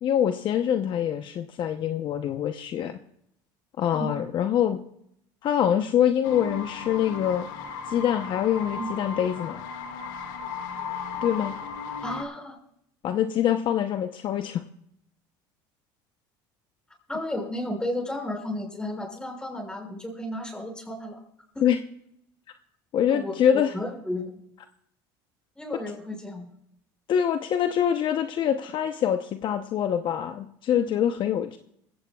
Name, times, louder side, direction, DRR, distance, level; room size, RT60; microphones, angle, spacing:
voice 1, 0.0-3.0 3.8-4.8 5.4-7.5 7.9-9.6 11.2-11.5 13.0-14.6 21.6-21.8 22.9-23.7 27.1-31.6, left 9 dB, 50° left, 8 dB, 0.8 m, -25 dB
sound 1, 6.2-12.2, left 5 dB, 85° left, 1.9 m, -36 dB
voice 2, 12.0-12.6 17.1-21.2 21.5-21.6 23.1-24.3 25.6-26.5, left 1 dB, 10° left, 1 dB, 5.9 m, -33 dB
21.0 x 16.0 x 2.4 m, 0.74 s
supercardioid pair, 100°, 11 cm